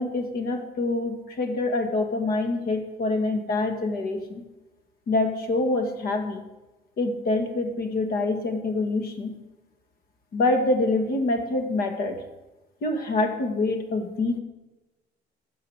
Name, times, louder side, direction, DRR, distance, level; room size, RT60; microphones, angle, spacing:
voice 1, 0.0-4.4 5.1-6.4 7.0-9.3 10.3-12.2 12.8-14.4, left 2 dB, 60° left, 5 dB, 2.1 m, -26 dB
13.0 x 7.5 x 6.5 m, 1.1 s
cardioid pair, 110°, 17 cm